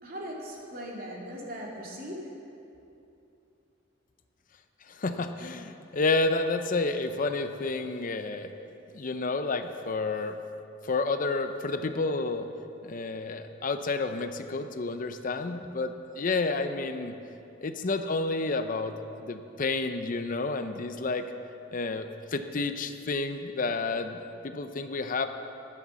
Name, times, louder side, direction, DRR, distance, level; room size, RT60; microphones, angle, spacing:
voice 1, 0.0-2.3, equal, 50° right, -3 dB, 2.7 m, -39 dB
voice 2, 5.0-8.5 8.9-10.4 10.9-12.5 12.8-17.2 17.6-21.3 21.7-25.3, left 3 dB, 45° left, 8 dB, 0.6 m, -30 dB
12.5 x 10.0 x 7.0 m, 2.7 s
head